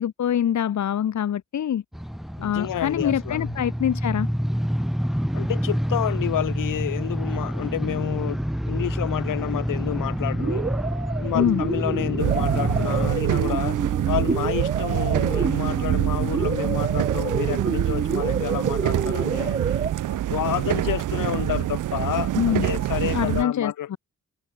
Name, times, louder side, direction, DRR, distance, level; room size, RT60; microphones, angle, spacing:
voice 1, 0.0-1.8 2.4-4.3 11.3-11.6 22.3-22.7 23.1-24.0, left 9 dB, 60° left, 1.3 m, -24 dB
sound 1, 1.9-13.1, equal, ahead, 2.8 m, -27 dB
voice 2, 2.4-3.5 5.3-10.7 11.2-13.8 14.1-19.8 20.1-23.9, left 11 dB, 85° left, 2.0 m, -29 dB
sound 2, 10.4-19.9, right 5 dB, 25° right, 0.8 m, -29 dB
sound 3, 12.2-23.4, right 13 dB, 70° right, 0.7 m, -25 dB
cardioid pair, 100°, 32 cm